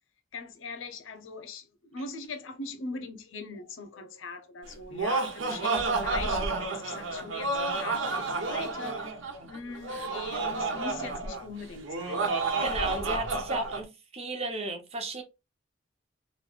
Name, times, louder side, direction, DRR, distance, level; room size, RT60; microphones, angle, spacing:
voice 1, 0.3-9.1 9.4-12.3, left 3 dB, 85° left, 0.6 m, -41 dB
Laughter, 4.7-13.8, right 3 dB, 85° right, 1.0 m, -30 dB
voice 2, 12.6-13.9 14.1-15.2, right 2 dB, 30° right, 0.9 m, -33 dB
3.2 x 3.0 x 2.4 m
head